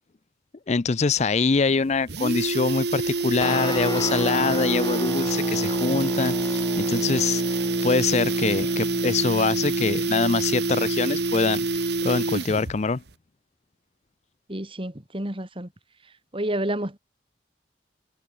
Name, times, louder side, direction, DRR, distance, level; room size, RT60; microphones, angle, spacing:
voice 1, 0.7-7.4 7.8-11.7 12.0-13.0, left 4 dB, 40° left, 0.5 m, -24 dB
sound 1, 1.2-1.3 1.6-1.7 1.9-12.8 13.1-13.2, right 3 dB, 65° right, 1.4 m, -26 dB
Guitar, 3.4-12.5, left 1 dB, 25° left, 4.7 m, -32 dB
voice 2, 14.5-15.7 16.3-17.0, right 1 dB, 30° right, 2.9 m, -29 dB
head